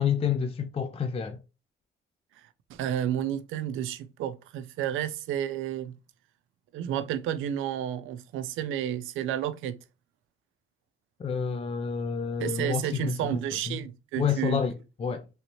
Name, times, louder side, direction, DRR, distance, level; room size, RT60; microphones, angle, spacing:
voice 1, 0.0-1.4 11.2-13.4 13.7-13.8 14.2-14.7 15.0-15.3, left 7 dB, 30° left, 0.4 m, -28 dB
voice 2, 2.7-6.0 6.7-9.8 12.4-14.6, right 10 dB, 85° right, 0.4 m, -31 dB
3.2 x 2.8 x 3.0 m
cardioid pair, 90°, 20 cm